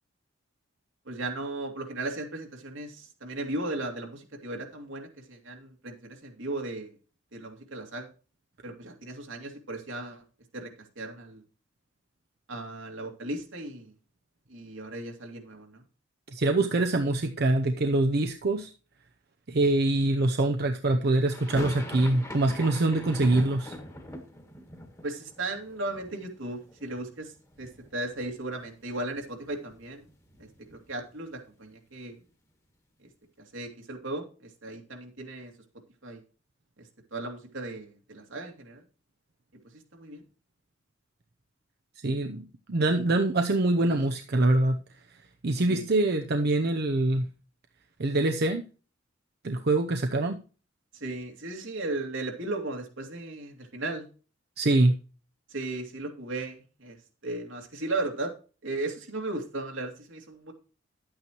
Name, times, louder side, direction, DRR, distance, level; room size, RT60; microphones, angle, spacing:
voice 1, 1.1-6.9 7.3-8.1 8.6-10.2 10.5-11.4 12.5-13.9 14.5-15.8 25.0-27.3 27.6-30.1 30.4-32.2 33.5-35.5 36.0-36.2 36.8-38.8 39.7-40.2 45.7-45.8 50.9-54.0 55.5-57.0 57.2-58.3 58.6-60.5, right 2 dB, 85° right, 3 dB, 2.4 m, -36 dB
voice 2, 16.3-18.7 19.5-23.7 42.0-44.8 45.4-47.3 48.0-48.6 49.4-50.4 54.6-54.9, right 2 dB, 55° right, 5 dB, 0.7 m, -24 dB
sound 1, 21.3-27.2 27.5-28.3 28.6-28.7 29.0-31.1, left 1 dB, 15° left, 1.6 m, -42 dB
11.0 x 8.8 x 3.0 m, 0.35 s
head